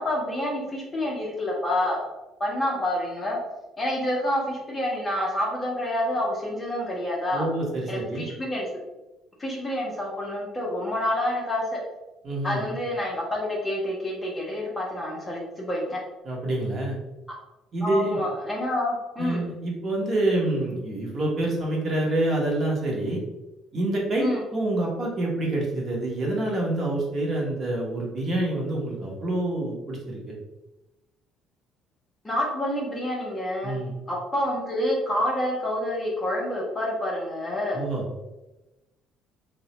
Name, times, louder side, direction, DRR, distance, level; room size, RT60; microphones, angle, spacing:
voice 1, 0.0-2.0 2.4-3.4 3.8-7.5 7.9-8.7 9.4-11.8 12.4-16.0 17.8-19.4 24.2-24.4 32.2-33.8 34.1-37.8, left 1 dB, 15° left, -3 dB, 0.6 m, -28 dB
voice 2, 7.3-8.2 12.2-12.7 16.2-17.0 17.7-18.2 19.2-23.2 23.7-30.4 33.6-33.9 37.7-38.1, right 1 dB, 30° right, -2 dB, 0.7 m, -27 dB
3.5 x 2.0 x 2.8 m, 1.0 s
cardioid pair, 170°, 0 cm